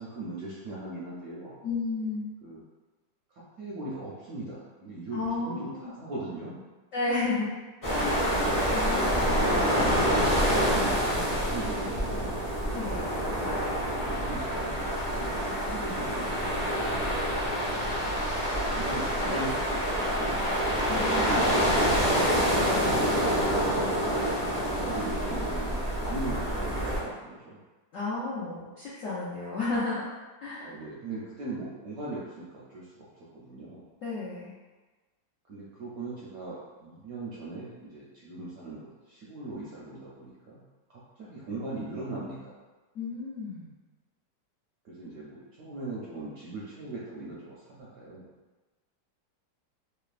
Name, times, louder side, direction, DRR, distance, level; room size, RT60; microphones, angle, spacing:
voice 1, 0.0-1.6 2.4-2.6 3.6-6.6 9.4-12.4 14.1-17.1 18.0-22.4 24.1-27.6 30.6-33.1 33.3-33.8 35.5-40.6 40.9-42.5 44.8-48.3, right 2 dB, 70° right, -7 dB, 0.8 m, -40 dB
voice 2, 1.6-2.3 5.1-5.9 6.9-7.6 7.9-8.3 8.7-9.5 12.7-13.1 20.9-21.4 22.6-23.1 27.9-30.1 30.4-30.7 34.0-34.5 42.9-43.7, left 3 dB, 75° left, -10 dB, 0.7 m, -33 dB
sound 1, 7.8-27.0, equal, 45° left, 0.4 m, -27 dB
3.2 x 2.0 x 2.4 m, 1.2 s
omnidirectional pair, 2.0 m